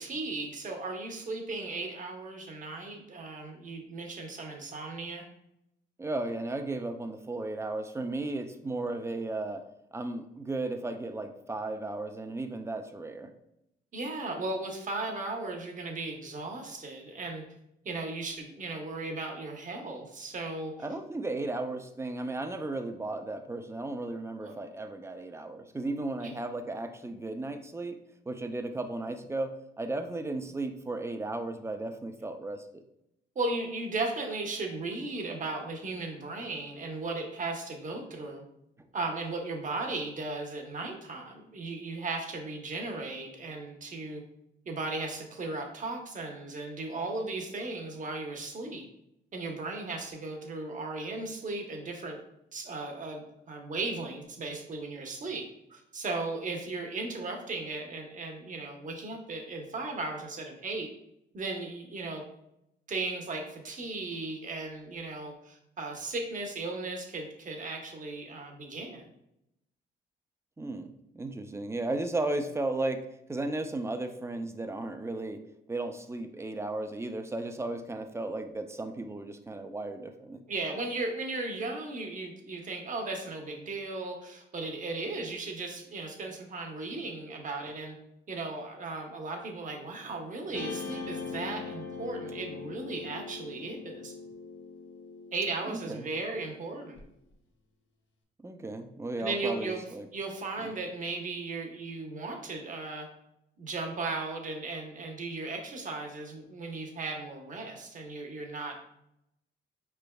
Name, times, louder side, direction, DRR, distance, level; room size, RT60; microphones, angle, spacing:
voice 1, 0.0-5.2 13.9-17.4 17.8-20.7 24.4-24.5 26.2-26.3 33.4-38.4 38.9-44.2 44.7-48.9 49.3-52.2 52.5-60.9 61.3-62.2 62.9-69.1 80.5-88.0 88.3-94.1 95.3-97.0 99.2-99.8 100.1-103.1 103.6-108.8, right 3 dB, 40° right, 2 dB, 0.9 m, -36 dB
voice 2, 6.0-9.6 9.9-13.3 20.8-28.0 28.3-32.8 70.6-73.0 73.3-75.4 75.7-80.4 95.7-96.1 98.4-100.1 100.6-100.7, right 2 dB, 15° right, 7 dB, 0.4 m, -35 dB
Guitar, 90.5-97.0, left 4 dB, 70° left, 0.8 m, -42 dB
5.0 x 3.3 x 2.3 m, 0.83 s
cardioid pair, 90°, 20 cm